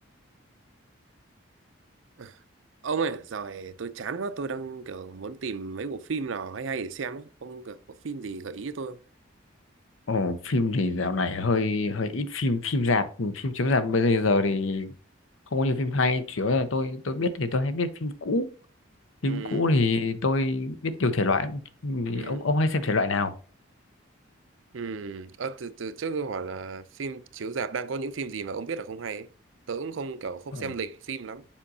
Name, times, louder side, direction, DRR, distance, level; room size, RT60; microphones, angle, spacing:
voice 1, 2.8-9.0 19.2-19.6 22.1-22.5 24.7-29.3 29.7-31.5, right 5 dB, 75° right, 0.5 m, -34 dB
voice 2, 10.1-14.9 15.5-18.5 19.2-23.3 30.5-30.7, left 3 dB, 80° left, 0.8 m, -25 dB
7.3 x 5.1 x 2.8 m
head